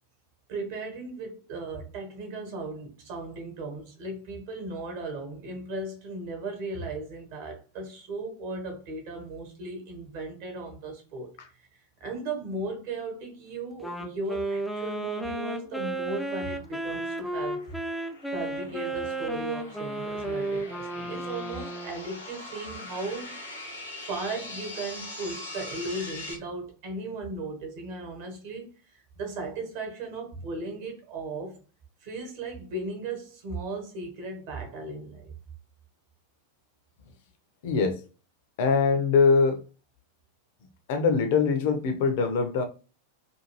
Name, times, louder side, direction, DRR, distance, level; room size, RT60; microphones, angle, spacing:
voice 1, 0.5-11.3 11.6-11.7 12.0-17.6 18.3-31.6 32.0-35.3, right 2 dB, 50° right, 1.0 m, -36 dB
Wind instrument woodwind instrument, 13.8-22.1, right 2 dB, ahead, 0.3 m, -33 dB
sound 1, 15.7-26.4, left 2 dB, 70° left, 0.9 m, -43 dB
voice 2, 37.6-38.0 38.6-39.6 40.9-42.6, left 5 dB, 50° left, 0.5 m, -22 dB
2.5 x 2.4 x 3.0 m
figure-of-eight pair, 90°, 0 cm